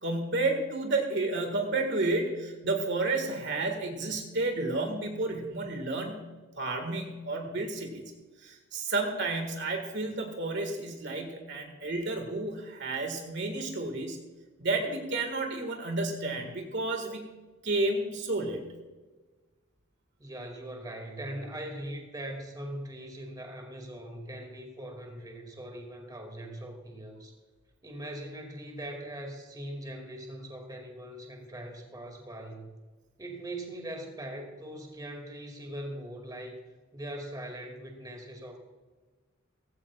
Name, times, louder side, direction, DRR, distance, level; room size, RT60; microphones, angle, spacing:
voice 1, 0.0-6.2 6.6-8.0 8.4-14.2 14.6-17.2 17.6-18.6, right 2 dB, 60° right, 3 dB, 1.9 m, -31 dB
voice 2, 20.2-27.3 27.8-32.7 33.2-36.6 36.9-38.6, right 1 dB, 20° right, 2 dB, 2.4 m, -41 dB
17.0 x 16.0 x 2.4 m, 1.3 s
head